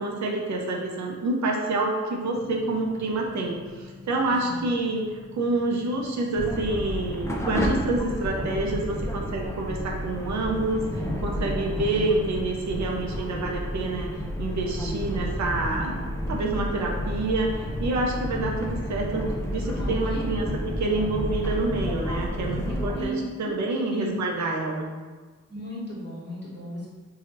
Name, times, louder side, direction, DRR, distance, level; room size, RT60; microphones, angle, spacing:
voice 1, 0.0-5.0 5.3-14.1 14.4-20.5 20.8-24.9, right 2 dB, 75° right, 0 dB, 0.5 m, -28 dB
sound 1, 2.3-18.3, left 3 dB, 35° right, 0.9 m, -46 dB
voice 2, 4.2-4.6 19.6-20.6 22.4-23.5 23.8-24.1 25.5-26.9, equal, 35° left, -6 dB, 1.2 m, -36 dB
sound 2, 6.4-23.1, equal, 10° left, 0.4 m, -31 dB
2.8 x 2.3 x 2.9 m, 1.4 s
cardioid pair, 60°, 29 cm